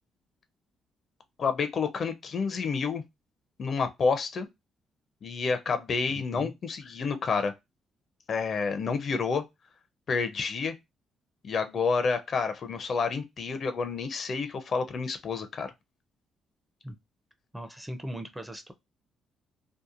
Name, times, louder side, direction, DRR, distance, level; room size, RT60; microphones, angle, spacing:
voice 1, 1.4-3.0 3.6-4.5 5.2-7.5 8.3-9.5 10.1-10.8 11.4-15.7, left 5 dB, 50° left, 0.5 m, -29 dB
voice 2, 17.5-18.7, right 1 dB, 10° right, 0.5 m, -39 dB
2.8 x 2.1 x 2.4 m
cardioid pair, 105°, 0 cm